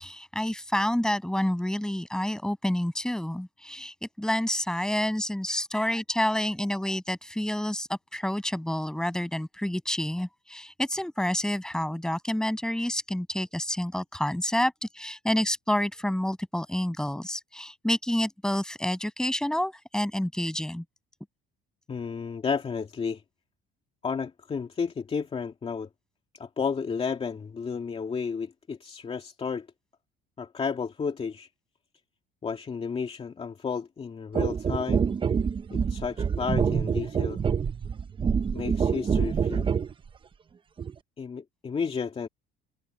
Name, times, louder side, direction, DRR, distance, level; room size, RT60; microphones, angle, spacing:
voice 1, 0.0-20.8, left 1 dB, 5° left, 6.5 m, -29 dB
voice 2, 21.9-23.2 24.0-25.9 26.3-29.7 30.4-31.5 32.4-35.0 35.7-37.4 38.5-39.7 41.2-42.3, left 5 dB, 30° left, 2.4 m, -32 dB
sound 1, 34.3-39.9 40.8-40.9, right 6 dB, 25° right, 0.7 m, -26 dB
cardioid pair, 120°, 20 cm